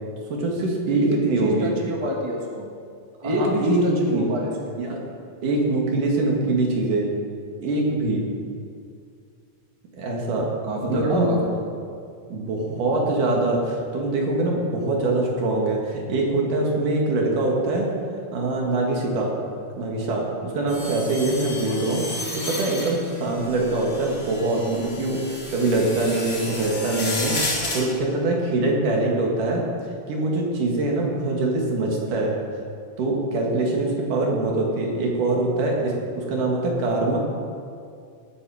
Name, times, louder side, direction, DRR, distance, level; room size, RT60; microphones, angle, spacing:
voice 1, 0.3-1.7 3.2-4.3 4.8-5.0 5.4-7.1 7.6-8.2 9.9-10.5 10.8-11.3 12.3-17.9 18.3-19.3 19.8-22.0 22.5-29.6 30.1-32.3 33.0-37.2, right 2 dB, 80° right, -1 dB, 3.6 m, -23 dB
voice 2, 0.9-2.7 3.2-4.5 10.6-11.7, equal, 15° right, -1 dB, 1.1 m, -26 dB
sound 1, 20.7-27.8, left 2 dB, 35° left, 4.1 m, -32 dB
20.0 x 9.0 x 5.0 m, 2.3 s
omnidirectional pair, 3.6 m